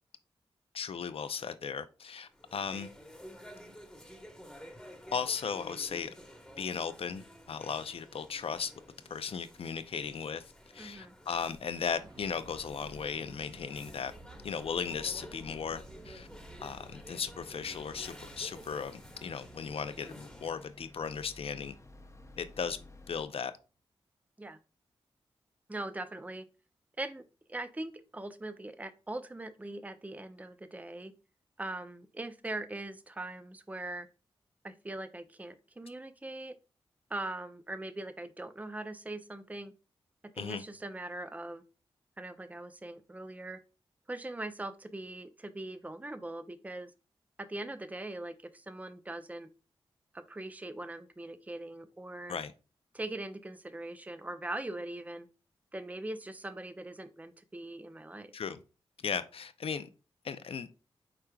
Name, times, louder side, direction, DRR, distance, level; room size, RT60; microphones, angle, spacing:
voice 1, 0.7-2.9 5.1-6.1 6.6-8.7 9.1-14.1 14.4-16.3 16.6-21.8 22.4-22.8 23.1-23.5 40.4-40.6 52.3-52.5 58.3-58.6 59.0-59.9 60.2-60.7, left 6 dB, 65° left, 0.5 m, -36 dB
sound 1, 2.3-20.7, equal, 5° left, 1.2 m, -52 dB
voice 2, 10.8-11.1 24.4-24.6 25.7-26.4 27.0-27.2 27.5-31.1 31.6-34.1 34.6-36.5 37.1-39.7 40.3-41.6 42.2-43.6 44.1-46.9 47.4-49.5 50.1-52.4 52.9-55.3 55.7-58.3, right 2 dB, 15° right, 0.5 m, -41 dB
sound 2, 11.7-23.6, right 2 dB, 40° right, 1.3 m, -55 dB
sound 3, 15.4-23.3, left 2 dB, 30° left, 0.7 m, -55 dB
4.9 x 4.4 x 2.3 m
cardioid pair, 40°, 10 cm